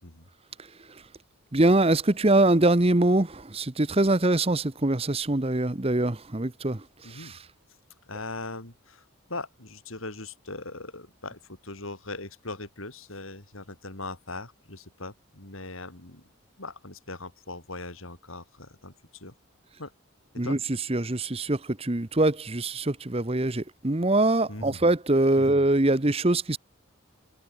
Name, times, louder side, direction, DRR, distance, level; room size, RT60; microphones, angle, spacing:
voice 1, 1.5-6.8 7.2-7.3 20.4-20.6 20.9-26.6, right 2 dB, 25° right, 1.0 m, -23 dB
voice 2, 7.0-7.4 8.1-16.3 16.6-19.3 19.8-19.9 20.4-20.6 24.5-24.8 25.4-25.5, left 2 dB, 70° left, 5.6 m, -40 dB
head